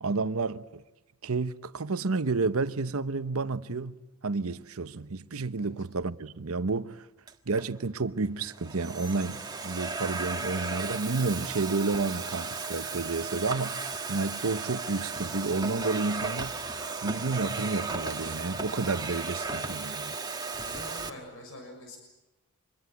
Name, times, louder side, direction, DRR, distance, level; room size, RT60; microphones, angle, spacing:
voice 1, 0.0-0.8 1.2-4.0 4.2-7.1 7.5-13.7 14.1-16.5 17.0-20.2, right 3 dB, 70° right, 0.9 m, -30 dB
Domestic sounds home sounds, 7.3-7.7 8.4-21.1, right 4 dB, 20° right, 1.5 m, -35 dB
voice 2, 20.6-22.0, left 1 dB, 65° left, 6.4 m, -45 dB
25.5 x 21.5 x 9.5 m
head